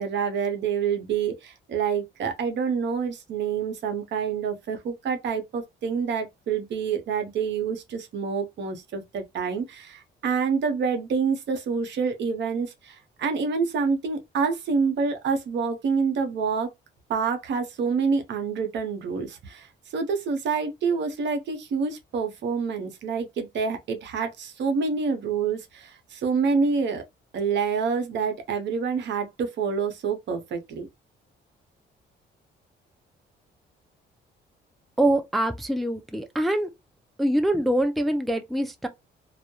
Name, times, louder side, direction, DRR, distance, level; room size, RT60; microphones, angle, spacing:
voice 1, 0.0-16.7 17.1-19.7 19.9-27.0 27.3-30.9, right 5 dB, 65° right, 0.7 m, -27 dB
voice 2, 35.0-36.7 37.2-38.9, right 1 dB, ahead, 0.3 m, -24 dB
2.2 x 2.0 x 2.8 m
cardioid pair, 90°, 20 cm